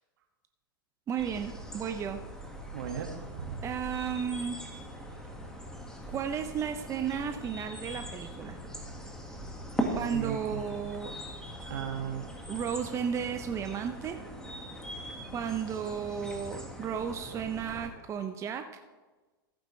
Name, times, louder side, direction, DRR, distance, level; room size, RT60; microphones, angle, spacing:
voice 1, 1.1-2.2 3.6-4.6 6.1-8.6 9.9-11.1 12.5-14.2 15.3-18.6, right 7 dB, 25° right, 7 dB, 0.6 m, -33 dB
sound 1, 1.2-17.9, equal, 5° left, 1.7 m, -41 dB
voice 2, 2.7-3.6 9.9-10.6 11.6-12.2, right 8 dB, 65° right, 4 dB, 1.9 m, -37 dB
15.0 x 8.7 x 3.2 m, 1.2 s
hypercardioid pair, 105°, 12 cm